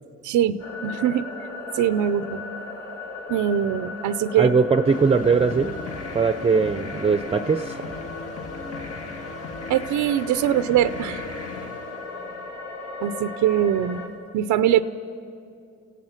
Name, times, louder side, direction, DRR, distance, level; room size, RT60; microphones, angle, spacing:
voice 1, 0.2-1.3 1.7-2.4 3.3-4.5 9.7-11.3 13.0-14.0 14.3-14.8, right 10 dB, 85° right, 13 dB, 0.6 m, -22 dB
sound 1, 0.6-14.1, left 3 dB, 70° left, 3.2 m, -37 dB
voice 2, 4.4-5.7 6.1-7.8, right 5 dB, 20° right, 10 dB, 0.6 m, -20 dB
sound 2, 4.8-12.6, left 4 dB, 50° left, 1.6 m, -38 dB
29.0 x 16.5 x 5.8 m, 2.5 s
cardioid pair, 90°, 30 cm